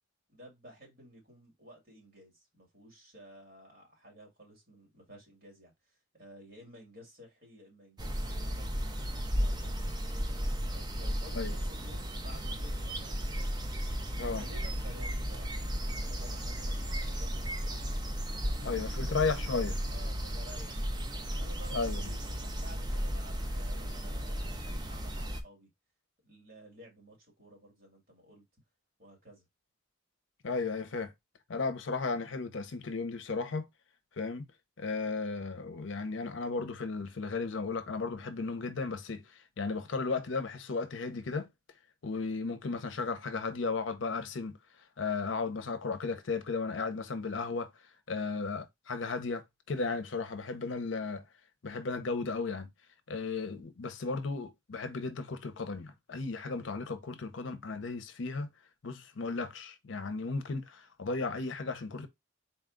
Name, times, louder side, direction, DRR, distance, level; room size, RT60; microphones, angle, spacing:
voice 1, 0.3-8.7 9.4-9.8 10.7-13.5 13.8-17.9 18.5-19.5 19.9-20.9 21.4-25.7 26.2-28.4 29.0-29.5, equal, 50° right, 2.0 m, -54 dB
sound 1, 8.0-25.4, equal, 20° right, 0.5 m, -34 dB
voice 2, 18.6-19.8 21.7-22.1 30.4-31.1 31.5-33.7 34.2-34.4 34.8-39.2 39.6-41.5 42.0-44.5 45.0-47.7 48.1-51.2 51.6-52.7 53.1-58.5 58.8-62.1, left 4 dB, 70° left, 0.6 m, -35 dB
4.1 x 2.2 x 3.7 m
head